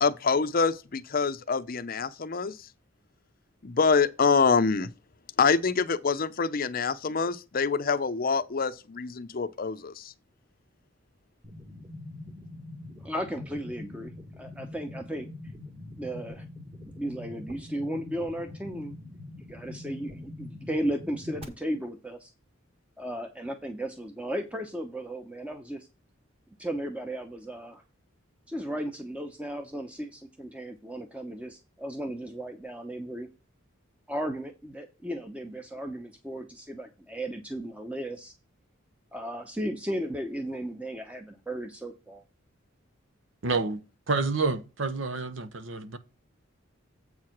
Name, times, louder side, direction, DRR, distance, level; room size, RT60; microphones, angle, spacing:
voice 1, 0.0-2.6 3.6-4.9 5.4-10.1, left 5 dB, 45° left, 0.6 m, -25 dB
sound 1, 11.4-21.4, left 2 dB, 30° right, 1.8 m, -44 dB
voice 2, 13.0-14.1 14.4-15.3 16.0-16.4 17.0-18.9 19.5-22.3 23.0-25.9 26.6-27.8 28.5-33.3 34.1-38.3 39.1-42.2, right 1 dB, 5° right, 0.8 m, -35 dB
voice 3, 43.4-43.8 44.1-46.0, right 3 dB, 65° right, 0.9 m, -28 dB
8.0 x 4.8 x 5.9 m
head